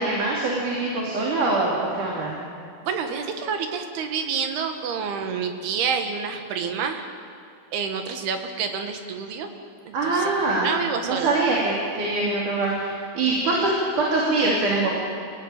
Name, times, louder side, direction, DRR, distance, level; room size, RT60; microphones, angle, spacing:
voice 1, 0.0-2.4 9.9-10.7 11.1-12.9 13.1-14.9, right 2 dB, 55° right, -3 dB, 4.2 m, -23 dB
voice 2, 2.8-7.1 7.7-9.5 9.9-11.4, right 6 dB, 85° right, 6 dB, 3.7 m, -28 dB
26.5 x 16.5 x 9.0 m, 2.5 s
omnidirectional pair, 4.4 m